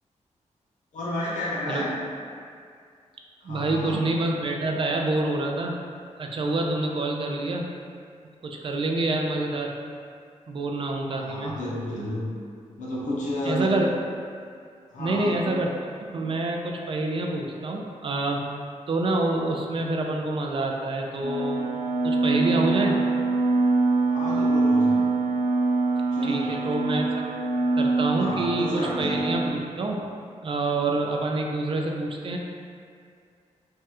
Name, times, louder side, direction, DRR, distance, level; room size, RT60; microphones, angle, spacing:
voice 1, 0.9-1.9 3.4-4.0 11.1-12.2 12.8-13.8 14.9-15.6 24.1-25.0 26.1-26.6 28.2-29.1, left 1 dB, 85° left, -6 dB, 0.6 m, -31 dB
voice 2, 3.4-5.7 6.2-7.7 8.4-9.8 10.5-11.5 13.4-13.9 15.0-15.7 16.1-18.4 18.9-21.7 22.0-23.0 26.2-27.2 27.8-30.0 30.4-32.4, right 2 dB, 45° right, 1 dB, 0.4 m, -27 dB
sound 1, 21.2-29.5, right 3 dB, 75° right, 0.7 m, -24 dB
3.2 x 2.3 x 2.8 m, 2.2 s
cardioid pair, 90°, 13 cm